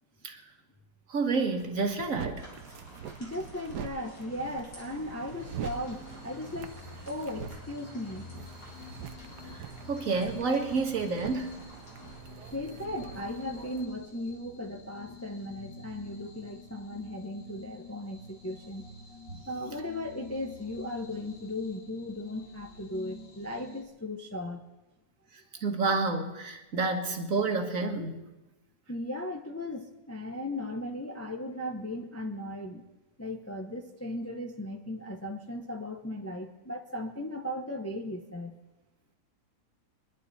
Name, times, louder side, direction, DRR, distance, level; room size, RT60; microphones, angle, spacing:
voice 1, 1.1-2.5 9.9-11.6 19.3-19.4 25.6-28.2, right 4 dB, 55° right, 5 dB, 1.8 m, -29 dB
sound 1, 1.3-13.8, right 9 dB, 80° right, 1.4 m, -44 dB
sound 2, 2.4-12.2, equal, 55° left, 4.4 m, -52 dB
voice 2, 3.2-6.8 7.1-8.3 12.3-18.9 19.5-24.6 28.9-32.8 33.2-38.6, left 1 dB, 15° left, 3 dB, 0.7 m, -37 dB
sound 3, 5.4-23.8, left 3 dB, 85° left, 2.2 m, -48 dB
24.0 x 11.0 x 4.2 m, 1.0 s
omnidirectional pair, 1.8 m